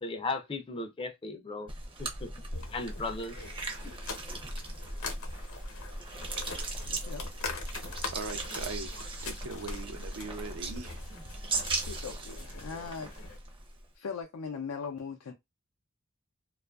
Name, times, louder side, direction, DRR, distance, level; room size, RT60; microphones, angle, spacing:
voice 1, 0.0-1.7 2.0-3.4 3.8-3.9, left 3 dB, 25° left, 0.4 m, -36 dB
sound 1, 1.7-13.9, right 2 dB, 25° right, 0.5 m, -38 dB
sound 2, 2.5-13.4, left 4 dB, 75° left, 0.8 m, -43 dB
voice 2, 6.8-7.3 11.6-13.1 13.9-15.3, left 5 dB, 90° left, 0.4 m, -40 dB
voice 3, 8.1-11.0, right 3 dB, 75° right, 0.5 m, -40 dB
2.5 x 2.3 x 2.3 m
head